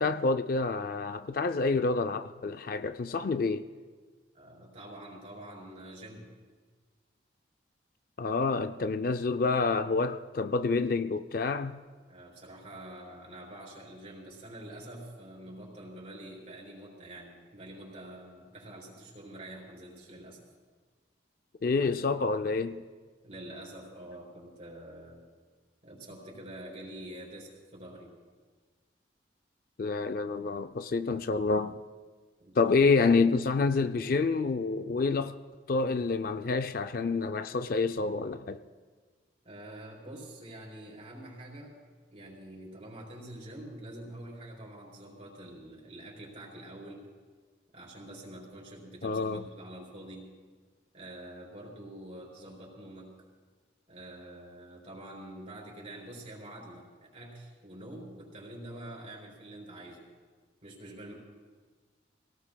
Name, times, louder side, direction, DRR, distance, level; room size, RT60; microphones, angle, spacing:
voice 1, 0.0-3.7 8.2-11.8 21.6-22.8 29.8-31.8 32.6-35.3 35.7-38.6 49.0-49.4, left 4 dB, 50° left, 0.4 m, -28 dB
voice 2, 4.3-6.3 12.1-20.4 23.2-25.2 25.8-28.2 32.4-32.7 39.4-41.8 42.1-47.1 47.7-50.3 50.9-53.1 53.9-60.1 60.6-61.1, right 1 dB, 35° right, 4.6 m, -46 dB
26.0 x 18.0 x 2.2 m
head